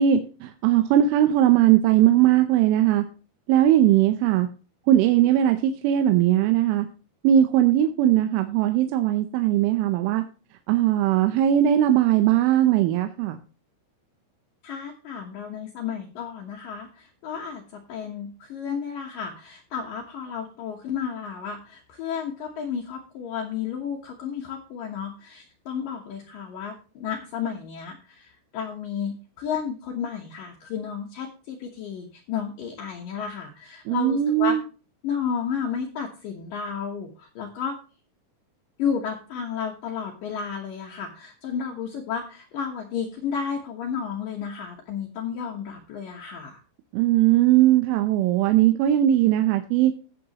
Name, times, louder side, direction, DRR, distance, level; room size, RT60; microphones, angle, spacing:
voice 1, 0.0-3.0 3.5-4.5 4.9-6.9 7.2-10.2 10.7-13.4 33.9-34.6 46.9-49.9, right 12 dB, 80° right, 7 dB, 3.1 m, -19 dB
voice 2, 14.6-34.6 35.0-37.8 38.8-46.6, left 7 dB, 85° left, 0 dB, 1.9 m, -32 dB
17.5 x 6.6 x 2.9 m, 0.35 s
omnidirectional pair, 5.8 m